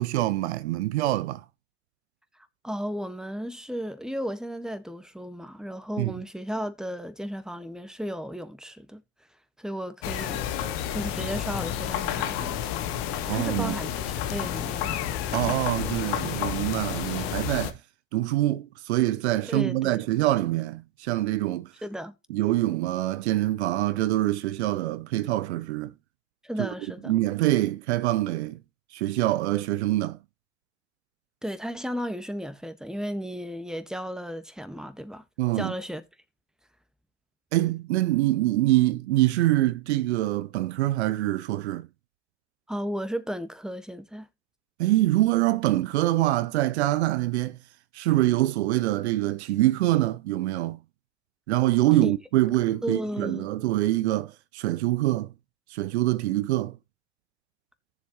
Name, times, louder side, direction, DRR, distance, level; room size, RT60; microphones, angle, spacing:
voice 1, 0.0-1.4 6.0-6.1 13.3-13.7 15.3-17.8 18.1-21.7 22.3-25.9 26.6-26.7 27.0-28.6 28.9-30.2 35.4-35.7 37.5-41.9 44.8-47.6 47.9-50.8 51.5-55.3 55.7-56.8, right 16 dB, 80° right, 0.5 m, -25 dB
voice 2, 2.6-9.0 9.6-10.5 10.9-12.7 13.3-15.0 19.5-20.0 21.8-22.1 26.4-27.2 31.4-35.2 35.5-36.0 42.7-44.3 52.0-52.1 52.5-53.5, equal, ahead, 1.5 m, -34 dB
sound 1, 10.0-17.7, left 10 dB, 75° left, 1.0 m, -30 dB
16.0 x 7.2 x 3.1 m
figure-of-eight pair, 45°, 33 cm